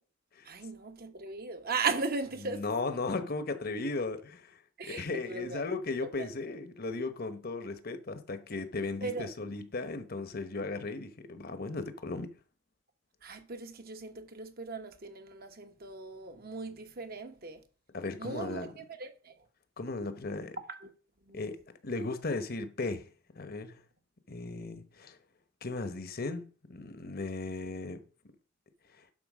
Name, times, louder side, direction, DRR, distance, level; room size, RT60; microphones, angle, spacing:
voice 1, 0.4-2.6 4.8-5.6 6.0-6.3 9.0-9.3 13.2-17.6 18.2-19.3 20.7-20.9 21.3-21.5, right 4 dB, 50° right, 1.2 m, -37 dB
voice 2, 2.4-4.5 4.8-12.3 17.9-18.7 19.8-20.6 21.3-21.6 21.8-23.1 23.4-23.8 24.3-25.2 25.6-28.0, left 3 dB, 50° left, 1.0 m, -36 dB
11.5 x 4.4 x 6.2 m
head